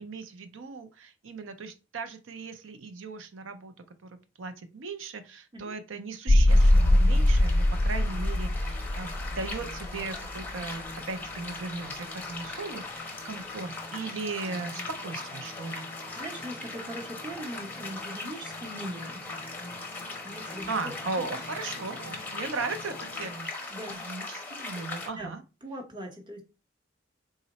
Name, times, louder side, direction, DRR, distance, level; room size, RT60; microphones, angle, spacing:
voice 1, 0.0-3.7 4.0-15.9 20.7-25.4, right 4 dB, 80° right, 0.5 m, -37 dB
sound 1, 6.3-23.3, left 1 dB, 50° left, 0.5 m, -29 dB
sound 2, 6.5-25.1, left 3 dB, 10° left, 0.7 m, -40 dB
voice 2, 16.1-19.6 19.9-21.3 23.7-24.0 25.1-25.3 25.6-26.4, right 1 dB, 25° right, 0.8 m, -41 dB
3.7 x 2.1 x 4.0 m
head